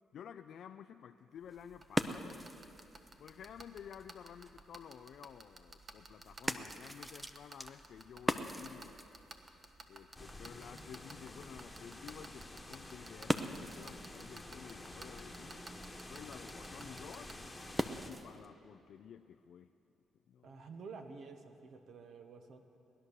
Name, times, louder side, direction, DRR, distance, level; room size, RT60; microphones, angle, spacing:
voice 1, 0.1-2.5 3.2-9.0 9.9-15.7 16.1-17.4 18.0-19.7 20.3-20.6, left 8 dB, 65° left, 7 dB, 0.4 m, -52 dB
sound 1, 1.4-18.5, right 1 dB, 10° right, 0.7 m, -43 dB
sound 2, 1.8-17.3, right 3 dB, 35° right, 1.2 m, -50 dB
sound 3, 10.1-18.1, left 1 dB, 10° left, 1.4 m, -50 dB
voice 2, 20.4-22.6, right 4 dB, 65° right, 6 dB, 1.2 m, -50 dB
19.0 x 11.0 x 6.6 m, 2.8 s
cardioid pair, 90°, 0 cm